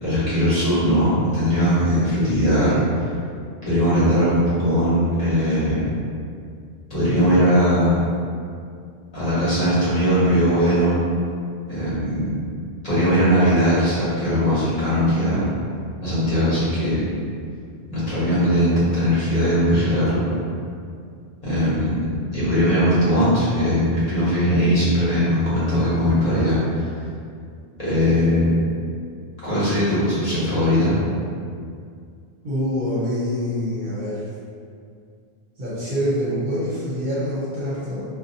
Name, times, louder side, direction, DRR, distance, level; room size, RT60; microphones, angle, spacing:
voice 1, 0.0-2.8 3.6-5.9 6.9-7.9 9.1-11.0 11.7-12.4 12.8-15.5 16.0-17.1 17.9-20.3 21.4-26.9 27.8-28.6 29.4-30.9, equal, 40° left, -12 dB, 0.9 m, -19 dB
voice 2, 32.4-34.3 35.6-38.1, equal, 55° right, -9 dB, 0.7 m, -25 dB
2.6 x 2.1 x 2.6 m, 2.3 s
omnidirectional pair, 1.1 m